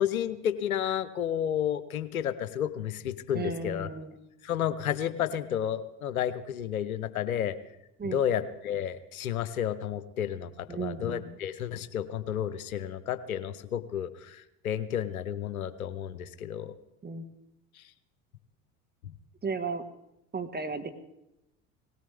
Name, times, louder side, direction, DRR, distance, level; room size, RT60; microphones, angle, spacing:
voice 1, 0.0-3.9 4.4-7.6 8.0-16.7 17.8-17.9 19.0-19.1, left 10 dB, 85° left, 14 dB, 0.9 m, -31 dB
voice 2, 3.3-4.1 8.0-8.2 10.7-11.4 17.0-17.2 19.4-19.8 20.3-20.9, right 4 dB, 25° right, 8 dB, 1.6 m, -34 dB
19.0 x 17.0 x 3.5 m, 0.89 s
hypercardioid pair, 70°, 41 cm